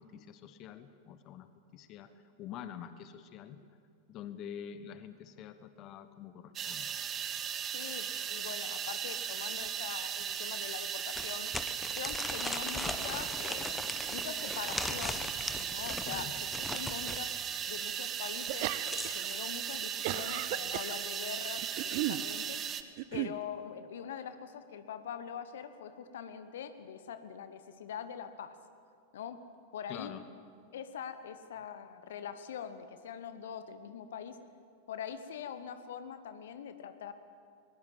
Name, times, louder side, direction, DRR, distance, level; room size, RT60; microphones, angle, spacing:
voice 1, 0.0-3.6 4.1-6.9 16.0-16.3 29.9-30.2, left 9 dB, 35° left, 11 dB, 1.2 m, -46 dB
sound 1, 6.6-22.8, right 8 dB, 25° right, 1.2 m, -37 dB
voice 2, 7.7-11.5 11.9-17.3 17.7-22.6 23.1-28.5 29.1-29.4 29.7-30.1 30.7-34.4 34.9-37.1, left 8 dB, 60° left, 11 dB, 1.2 m, -43 dB
sound 2, 9.7-9.8 10.2-10.3 11.1-17.2 18.5-19.4, left 3 dB, 10° left, 1.3 m, -39 dB
sound 3, 18.5-19.3 19.6-20.9 21.6-22.2 23.0-23.4, right 16 dB, 45° right, 0.8 m, -35 dB
22.0 x 21.0 x 7.5 m, 2.3 s
figure-of-eight pair, 90°, 0 cm